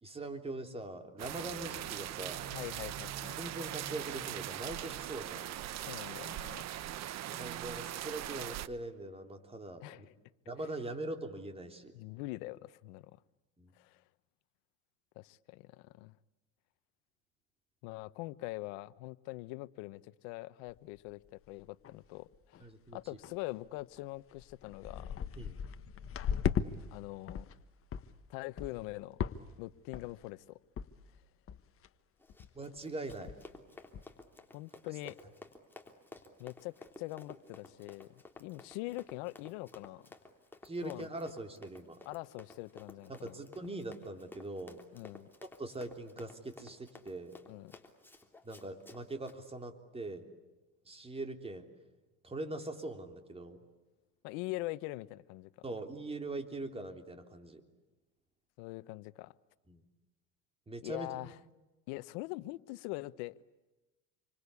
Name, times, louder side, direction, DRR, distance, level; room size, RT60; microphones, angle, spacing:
voice 1, 0.0-2.5 3.4-5.5 7.3-10.0 10.5-11.9 13.6-13.7 22.6-23.0 25.4-25.6 32.5-33.3 40.6-42.0 43.1-44.8 45.6-47.4 48.4-50.3 50.8-51.7 52.2-53.6 55.6-57.6 59.7-59.8 60.7-61.1, right 2 dB, 15° right, 3.4 m, -42 dB
sound 1, 1.2-8.7, right 12 dB, 45° right, 1.1 m, -40 dB
voice 2, 2.5-3.4 5.8-6.7 9.8-10.1 11.9-13.2 13.8-14.0 15.2-16.1 17.8-25.2 26.9-27.5 28.3-29.2 29.6-30.6 34.5-35.1 36.4-38.1 38.4-40.0 40.8-41.1 42.0-43.4 44.9-45.3 47.5-47.7 54.2-55.7 58.6-59.3 60.8-61.4 61.9-63.3, left 20 dB, 75° left, 1.1 m, -43 dB
sound 2, 20.7-20.8 21.3-21.4 21.6-22.1 22.3-22.6 23.2-23.3 24.0-24.1 24.4-26.7 27.0-27.6 27.9-28.1 28.6-28.9 29.2-29.6 29.9-30.3 30.8-30.9 31.2-31.3 31.5-31.9 32.3-32.5 32.8-32.9 33.1-33.5 33.9-34.0, left 8 dB, 35° left, 1.4 m, -37 dB
Run, 32.2-49.4, left 2 dB, 5° left, 3.3 m, -54 dB
28.0 x 25.0 x 8.4 m
supercardioid pair, 120°, 38 cm